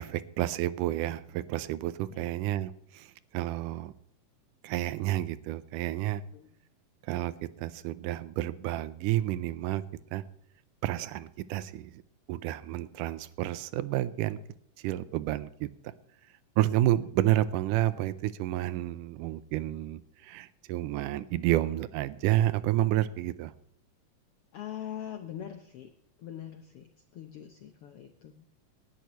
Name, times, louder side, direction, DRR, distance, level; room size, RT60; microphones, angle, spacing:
voice 1, 0.0-3.9 4.6-6.2 7.1-7.3 7.6-9.8 10.1-10.2 10.8-12.0 12.3-14.4 14.8-15.7 16.6-23.5, right 14 dB, 85° right, 16 dB, 2.2 m, -30 dB
voice 2, 24.5-25.9 26.2-28.4, left 10 dB, 75° left, 7 dB, 1.3 m, -42 dB
18.5 x 11.0 x 3.0 m, 0.72 s
omnidirectional pair, 3.7 m